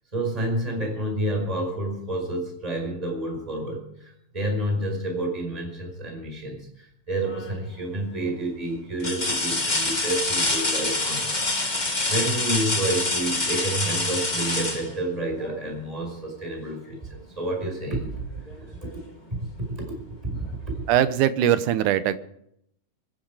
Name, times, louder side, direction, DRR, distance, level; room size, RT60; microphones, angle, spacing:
voice 1, 0.1-11.8 12.1-18.2 18.7-18.8 19.3-20.7, right 1 dB, 10° right, 1 dB, 5.1 m, -29 dB
sound 1, 7.2-7.7 8.3-8.4 9.0-15.7 17.5-17.6 18.1-19.1 20.4-20.5, left 2 dB, 25° left, 0.9 m, -27 dB
voice 2, 20.9-22.2, right 11 dB, 75° right, 12 dB, 2.2 m, -21 dB
25.0 x 10.5 x 4.9 m, 0.73 s
omnidirectional pair, 3.9 m